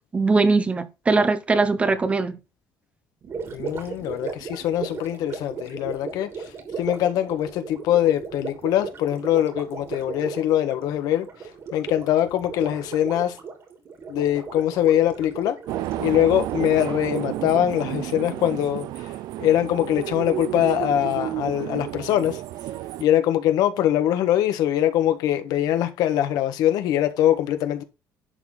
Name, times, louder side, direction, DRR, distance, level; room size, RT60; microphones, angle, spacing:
voice 1, 0.1-2.4, right 3 dB, 20° right, 1.0 m, -21 dB
Gurgling, 3.2-18.5, right 5 dB, 40° right, 3.1 m, -37 dB
voice 2, 3.5-6.4 6.8-11.3 11.7-13.4 14.1-15.6 16.0-19.1 19.4-22.4 23.0-27.8, left 11 dB, 85° left, 1.6 m, -23 dB
sound 1, 15.7-23.0, right 15 dB, 90° right, 0.5 m, -31 dB
11.0 x 4.2 x 6.6 m
cardioid pair, 160°, 6 cm